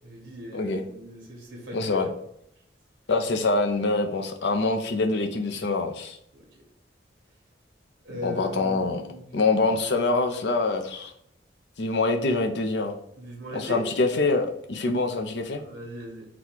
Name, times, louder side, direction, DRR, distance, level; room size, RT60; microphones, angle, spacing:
voice 1, 0.0-2.0 6.3-6.4 8.0-9.2 13.2-13.8 15.6-16.3, equal, 90° right, 0 dB, 1.1 m, -39 dB
voice 2, 1.7-2.1 3.1-6.2 8.2-9.0 9.3-11.1 11.8-13.0 13.5-15.6, left 3 dB, 70° left, 5 dB, 0.6 m, -25 dB
4.1 x 2.2 x 4.4 m, 0.74 s
head